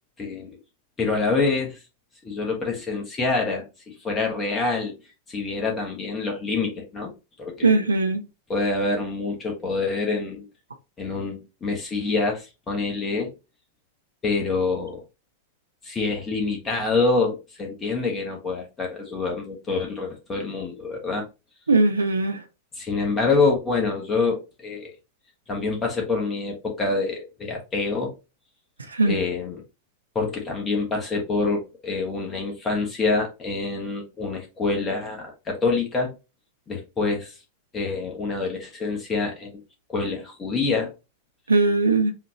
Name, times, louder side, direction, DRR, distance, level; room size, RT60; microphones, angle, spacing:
voice 1, 0.2-0.6 1.0-1.8 2.2-4.9 5.3-7.1 7.4-7.8 8.5-10.4 11.0-13.3 14.2-15.0 15.8-21.2 22.7-24.9 25.5-28.1 29.1-29.6 30.1-36.1 36.7-37.4 37.7-39.6 39.9-40.9, left 3 dB, 20° left, 1.2 m, -26 dB
voice 2, 7.6-8.2 21.7-22.4 28.9-29.1 41.5-42.1, right 3 dB, 75° right, 0.7 m, -19 dB
5.8 x 2.6 x 2.8 m
figure-of-eight pair, 90°, 0 cm